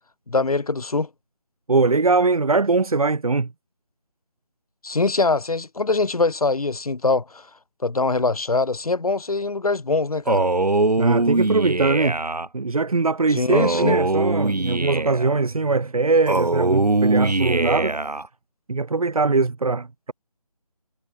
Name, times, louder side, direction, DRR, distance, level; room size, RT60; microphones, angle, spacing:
voice 1, 0.3-1.1 4.8-7.5 7.8-10.5 13.3-14.0, left 3 dB, 65° left, 4.2 m, -23 dB
voice 2, 1.7-3.5 11.0-12.2 12.5-18.0 18.7-20.1, right 3 dB, 65° right, 2.5 m, -21 dB
Male speech man speaking, 10.3-12.5 13.5-15.3 16.3-18.3, right 2 dB, 85° right, 4.2 m, -21 dB
figure-of-eight pair, 165°, 20 cm